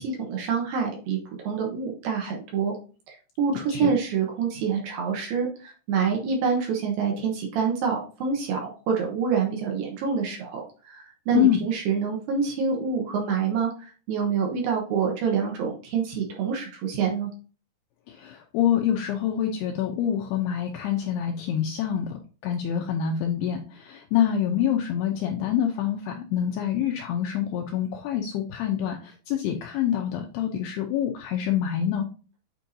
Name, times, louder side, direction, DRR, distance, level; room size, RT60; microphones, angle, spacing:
voice 1, 0.0-2.8 3.1-17.3, right 6 dB, 70° right, 0 dB, 2.2 m, -27 dB
voice 2, 11.3-11.7 18.1-22.2 22.4-32.1, left 10 dB, 85° left, 2 dB, 2.3 m, -26 dB
9.3 x 4.5 x 2.6 m, 0.37 s
omnidirectional pair, 5.4 m